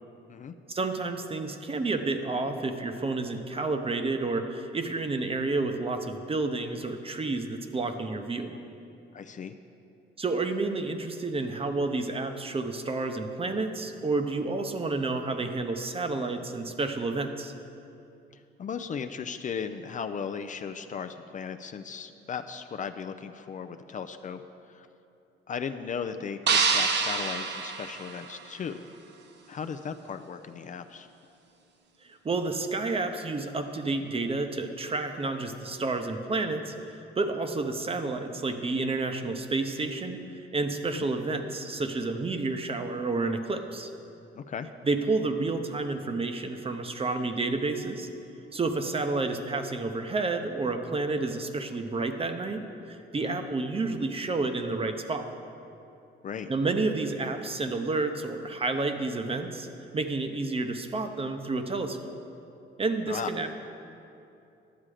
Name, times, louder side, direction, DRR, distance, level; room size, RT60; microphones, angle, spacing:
voice 1, 0.7-8.5 10.2-17.5 32.0-40.2 40.5-43.9 44.8-48.1 48.5-55.2 56.5-59.7 59.9-62.2 62.8-63.5, right 3 dB, 30° right, 6 dB, 0.8 m, -30 dB
voice 2, 9.1-9.5 18.3-24.4 24.7-24.9 25.5-28.8 29.5-31.1 40.9-41.1 44.4-44.7 53.2-53.4 56.2-56.5 63.1-63.3, left 6 dB, 40° left, 8 dB, 0.4 m, -36 dB
sound 1, 26.5-28.7, right 5 dB, 60° right, 0.8 m, -27 dB
11.5 x 7.4 x 4.9 m, 2.8 s
cardioid pair, 90°, 20 cm